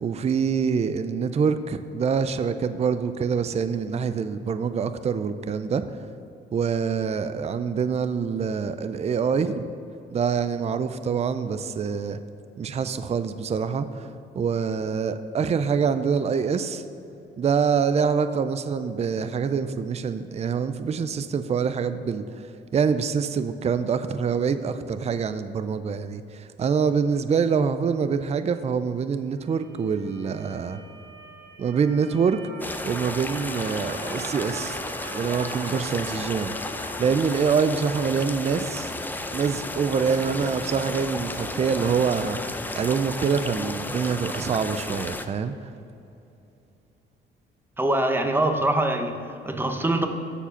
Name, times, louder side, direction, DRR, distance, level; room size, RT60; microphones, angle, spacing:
voice 1, 0.0-5.9 6.5-9.7 10.1-12.2 12.6-14.1 14.4-16.8 17.4-22.2 22.7-30.8 31.6-32.4 32.9-34.8 35.1-38.9 39.3-45.5, right 6 dB, 35° right, 11 dB, 0.5 m, -25 dB
Motor vehicle (road) / Siren, 29.4-36.8, right 1 dB, 85° right, 1.9 m, -43 dB
sound 1, 32.6-45.2, left 2 dB, 10° left, 0.6 m, -33 dB
voice 2, 47.8-50.1, right 1 dB, 10° right, 5 dB, 0.9 m, -24 dB
13.5 x 4.8 x 5.8 m, 2.8 s
cardioid pair, 90°, 20 cm